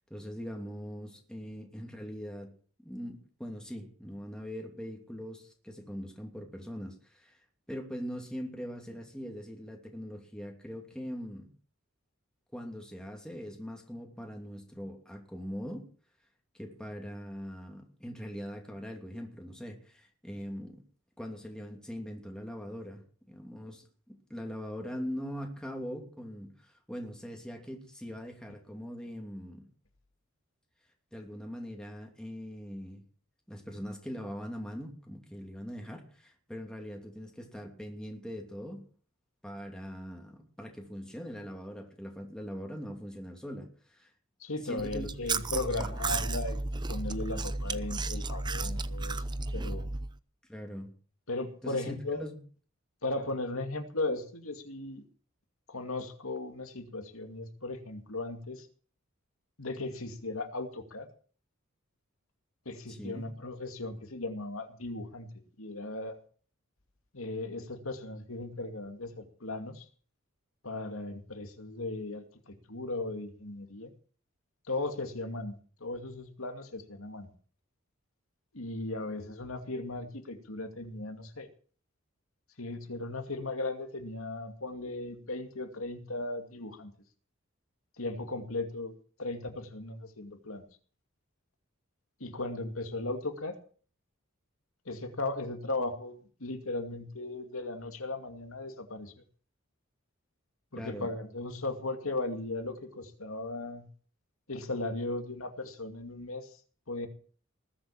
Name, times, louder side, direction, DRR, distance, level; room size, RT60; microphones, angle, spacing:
voice 1, 0.1-2.5 2.8-7.4 7.7-11.5 12.5-15.9 16.5-20.8 21.2-23.0 23.3-29.6 31.1-33.0 33.5-38.8 39.4-44.1 44.6-46.3 50.5-50.9 51.6-52.4 62.9-63.3 100.8-101.1, equal, 5° left, 2 dB, 2.7 m, -41 dB
voice 2, 44.4-46.6 46.9-49.2 49.5-49.9 51.3-52.2 53.0-55.0 55.7-58.7 59.6-61.1 62.7-65.3 65.6-66.2 67.1-69.9 70.6-73.9 74.7-77.3 78.5-81.5 82.6-86.9 88.0-88.9 89.2-90.7 92.2-93.5 94.9-99.1 100.7-103.8 104.5-106.5 106.9-107.1, left 2 dB, 75° left, 6 dB, 2.5 m, -37 dB
Chewing mastication, 44.8-50.1, right 3 dB, 20° right, 0.6 m, -33 dB
20.0 x 7.8 x 7.4 m, 0.43 s
head